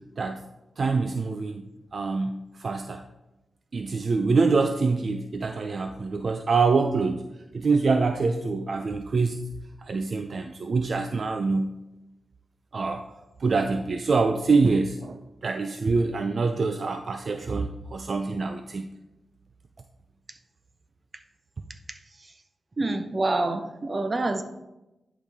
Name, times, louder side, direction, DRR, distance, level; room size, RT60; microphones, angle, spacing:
voice 1, 0.8-1.6 1.9-3.0 3.7-7.2 7.5-9.4 9.8-11.7 12.7-13.0 13.4-18.9, right 4 dB, 60° right, 6 dB, 0.5 m, -25 dB
voice 2, 22.8-24.4, right 2 dB, 40° right, 8 dB, 0.9 m, -26 dB
10.5 x 5.1 x 3.6 m, 0.96 s
cardioid pair, 60°, 0 cm